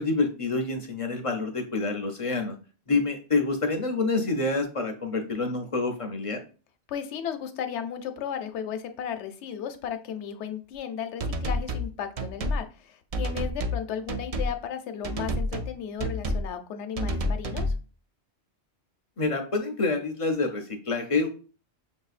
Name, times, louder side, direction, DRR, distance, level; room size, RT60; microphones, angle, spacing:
voice 1, 0.0-2.5 2.9-6.4 19.2-21.3, left 3 dB, 45° left, 5 dB, 0.4 m, -27 dB
voice 2, 6.9-17.6, left 8 dB, 80° left, 8 dB, 0.9 m, -35 dB
sound 1, 11.2-11.9 12.2-12.6 13.1-13.8 14.1-14.5 15.0-15.7 16.0-16.5 17.0-17.8, equal, 75° right, 0.3 m, -29 dB
5.9 x 2.7 x 2.4 m, 0.37 s
omnidirectional pair, 1.2 m